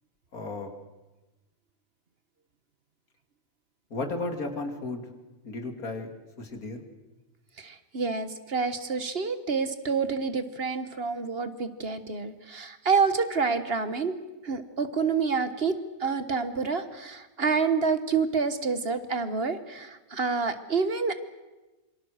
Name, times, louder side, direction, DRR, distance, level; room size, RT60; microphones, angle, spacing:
voice 1, 0.3-0.7 3.9-5.1 5.4-6.8, left 2 dB, 90° left, 5 dB, 3.0 m, -34 dB
voice 2, 7.6-14.2 14.4-21.1, right 5 dB, 45° right, 11 dB, 1.5 m, -28 dB
26.5 x 24.5 x 6.5 m, 1.1 s
omnidirectional pair, 1.5 m